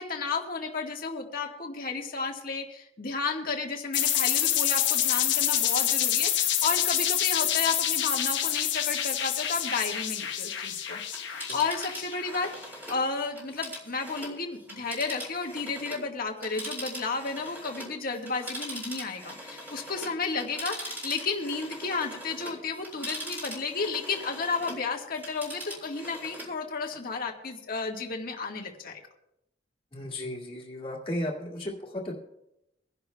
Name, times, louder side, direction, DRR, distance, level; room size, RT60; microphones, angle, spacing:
voice 1, 0.0-12.5 12.9-29.0, left 4 dB, 50° left, 2 dB, 1.5 m, -32 dB
sound 1, 3.9-12.5, left 10 dB, 70° left, 1.1 m, -27 dB
Telephone, 11.1-16.1 16.4-24.8 25.1-26.6 26.9-27.0, equal, 10° right, 3.7 m, -41 dB
voice 2, 29.9-32.1, left 1 dB, 30° left, -4 dB, 2.1 m, -34 dB
24.5 x 11.0 x 2.2 m, 0.86 s
head